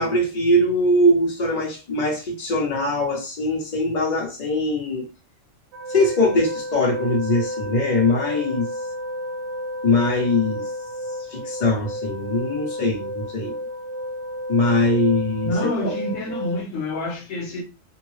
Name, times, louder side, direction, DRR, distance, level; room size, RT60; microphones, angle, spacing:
voice 1, 0.0-5.1 5.9-8.7 9.8-10.6 11.3-13.6 14.5-15.9, left 1 dB, 40° left, 1.0 m, -21 dB
sound 1, 5.7-16.6, equal, 70° right, 0.8 m, -32 dB
voice 2, 15.5-17.6, left 1 dB, 80° left, 1.1 m, -27 dB
2.7 x 2.1 x 3.2 m
omnidirectional pair, 1.3 m